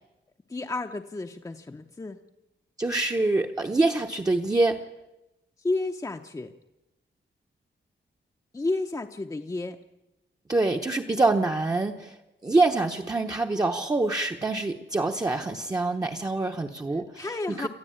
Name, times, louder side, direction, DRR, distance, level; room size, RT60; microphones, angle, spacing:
voice 1, 0.5-2.2 5.6-6.5 8.5-9.8 17.2-17.7, left 2 dB, 15° left, 5 dB, 0.7 m, -31 dB
voice 2, 2.8-4.9 10.5-12.2 12.4-17.7, right 2 dB, 20° right, 2 dB, 0.9 m, -25 dB
28.5 x 13.5 x 8.7 m, 0.99 s
wide cardioid pair, 180°, 19 cm